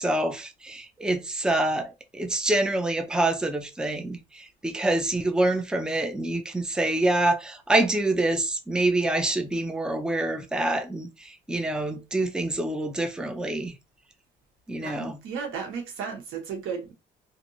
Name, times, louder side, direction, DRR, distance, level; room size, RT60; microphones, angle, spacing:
voice 1, 0.0-13.8 14.7-15.2, right 2 dB, 5° right, 0.5 m, -26 dB
voice 2, 14.8-16.9, right 6 dB, 90° right, 1.1 m, -34 dB
2.8 x 2.6 x 2.6 m
cardioid pair, 90°, 20 cm